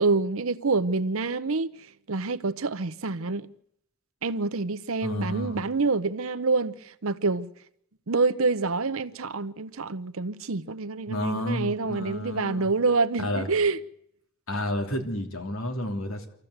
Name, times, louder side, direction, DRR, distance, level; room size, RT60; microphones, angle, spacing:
voice 1, 0.0-1.7 2.1-3.5 4.2-7.5 8.1-13.8, right 3 dB, 70° right, 0.8 m, -27 dB
voice 2, 5.0-5.7 11.1-12.7 13.2-13.5 14.5-16.3, left 1 dB, 70° left, 3.2 m, -31 dB
26.0 x 14.5 x 8.1 m
head